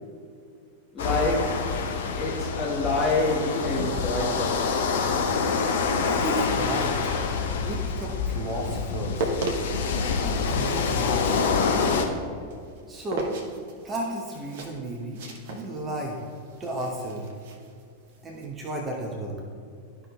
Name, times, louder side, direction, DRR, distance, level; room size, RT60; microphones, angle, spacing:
voice 1, 0.9-1.7 2.2-4.7, left 2 dB, 20° left, -5 dB, 1.4 m, -27 dB
sound 1, 1.0-12.1, left 5 dB, 55° left, 0.7 m, -26 dB
voice 2, 5.9-7.0 7.5-9.3 10.2-11.5 12.9-13.4 13.8-16.2 16.6-17.3 18.2-19.4, right 1 dB, 20° right, -2 dB, 0.9 m, -33 dB
sound 2, 9.0-18.5, right 2 dB, 55° right, 1.0 m, -36 dB
12.0 x 5.7 x 2.3 m, 2.3 s
figure-of-eight pair, 90°, 0 cm